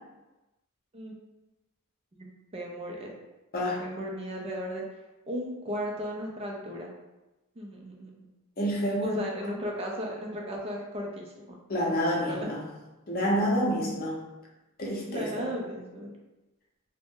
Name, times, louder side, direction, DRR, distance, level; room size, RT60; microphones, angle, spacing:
voice 1, 2.2-3.1 3.6-4.8 5.3-6.9 7.6-8.1 9.0-11.6 12.3-12.5 15.1-16.1, equal, 25° right, -1 dB, 0.4 m, -36 dB
voice 2, 8.6-9.2 11.7-12.6 13.1-14.2 14.8-15.4, equal, 45° left, -2 dB, 0.7 m, -28 dB
2.5 x 2.1 x 3.5 m, 1.1 s
head